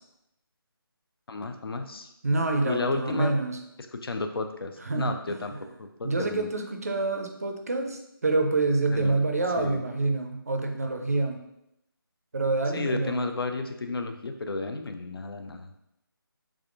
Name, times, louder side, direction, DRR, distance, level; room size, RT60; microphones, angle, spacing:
voice 1, 1.3-2.1 2.6-3.3 3.9-6.5 8.9-9.2 9.6-9.8 12.7-15.7, left 3 dB, 75° left, 7 dB, 0.5 m, -32 dB
voice 2, 2.2-3.6 4.8-5.4 6.0-11.4 12.3-13.2, right 3 dB, 40° right, 4 dB, 0.4 m, -27 dB
3.5 x 3.2 x 2.4 m, 0.83 s
figure-of-eight pair, 175°, 12 cm